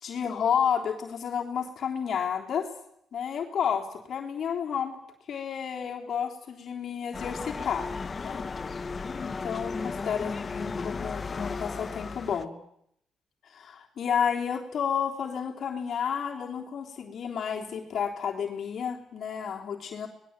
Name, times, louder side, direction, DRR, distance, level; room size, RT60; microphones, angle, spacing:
voice 1, 0.0-2.7 3.1-5.0 5.3-7.9 8.2-8.4 9.2-12.5 13.4-20.1, left 7 dB, 60° left, 1 dB, 3.6 m, -31 dB
sound 1, 7.1-12.5, left 4 dB, 35° left, 1.0 m, -34 dB
25.0 x 20.5 x 9.0 m, 0.72 s
cardioid pair, 90°, 0 cm